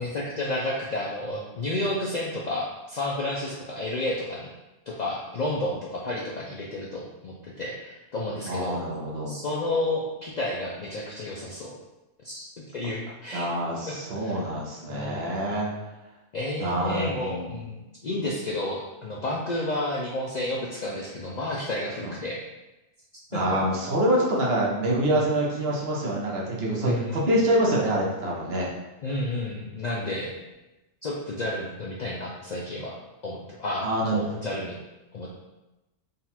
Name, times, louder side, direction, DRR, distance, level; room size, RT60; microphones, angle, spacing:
voice 1, 0.0-4.5 4.9-8.8 9.3-11.8 12.2-12.5 12.7-13.5 13.9-14.4 14.9-15.5 16.3-22.4 23.3-23.4 25.1-25.3 26.8-27.2 29.0-30.3 31.0-33.0 33.2-34.8 35.1-35.3, left 1 dB, 55° left, -4 dB, 0.4 m, -31 dB
voice 2, 8.5-9.4 13.3-15.7 16.6-17.5 22.0-22.2 23.3-28.7 33.8-34.2, right 1 dB, 60° right, -3 dB, 1.0 m, -26 dB
3.9 x 2.4 x 4.1 m, 1.0 s
omnidirectional pair, 1.2 m